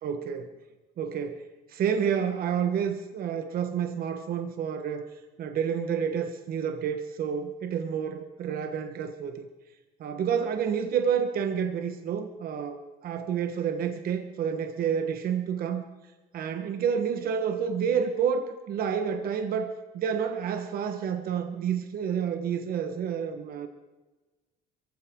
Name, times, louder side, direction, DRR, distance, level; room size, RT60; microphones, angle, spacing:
voice 1, 0.0-0.5 1.0-5.1 5.4-9.5 10.0-15.9 16.3-23.7, right 7 dB, 60° right, 7 dB, 1.4 m, -29 dB
23.0 x 15.5 x 3.8 m, 1.2 s
cardioid pair, 110°, 17 cm